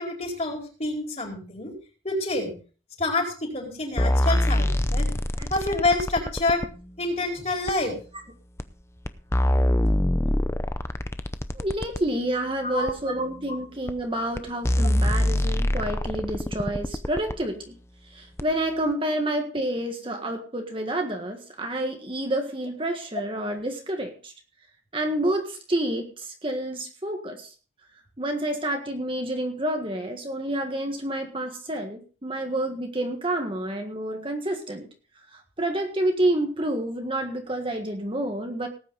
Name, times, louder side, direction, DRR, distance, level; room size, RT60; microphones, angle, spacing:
voice 1, 0.0-1.7 2.0-2.5 3.0-5.1 5.5-6.6 7.0-7.9 12.6-12.9, left 2 dB, 35° left, 1 dB, 4.5 m, -27 dB
sound 1, 4.0-6.7 7.7-7.8 8.6-8.7 9.1-12.0 12.9-13.0 13.9-14.0 14.4-14.5 14.6-17.4 18.4-18.5, left 1 dB, 15° left, 0.6 m, -24 dB
voice 2, 11.5-17.8 18.1-24.3 24.9-27.5 28.2-34.9 35.3-38.7, right 1 dB, 30° right, 3 dB, 1.7 m, -29 dB
18.5 x 9.1 x 3.9 m, 0.37 s
head